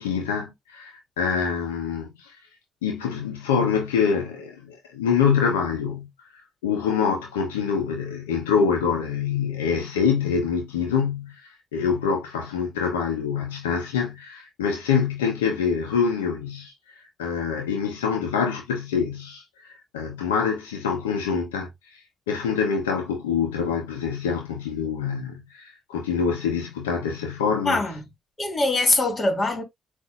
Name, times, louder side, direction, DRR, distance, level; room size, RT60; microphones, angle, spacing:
voice 1, 0.0-2.3 2.8-6.1 6.6-11.3 11.7-16.7 17.2-21.7 22.3-27.8, left 6 dB, 90° left, 0.9 m, -25 dB
voice 2, 27.7-28.0 28.4-29.6, left 2 dB, 35° left, 2.6 m, -22 dB
7.9 x 2.7 x 2.4 m
hypercardioid pair, 45°, 0 cm